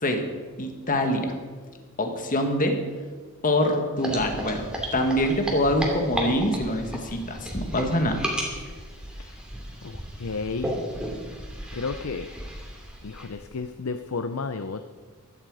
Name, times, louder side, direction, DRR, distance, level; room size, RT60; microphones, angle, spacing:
voice 1, 0.6-1.3 2.0-2.8 3.4-4.7 4.9-8.2, left 1 dB, 40° left, 5 dB, 1.7 m, -24 dB
sound 1, 4.0-13.5, equal, 5° right, 2.6 m, -34 dB
voice 2, 9.8-10.8 11.7-12.3 13.0-14.8, left 4 dB, 75° left, 9 dB, 0.6 m, -32 dB
16.0 x 12.0 x 4.9 m, 1.4 s
head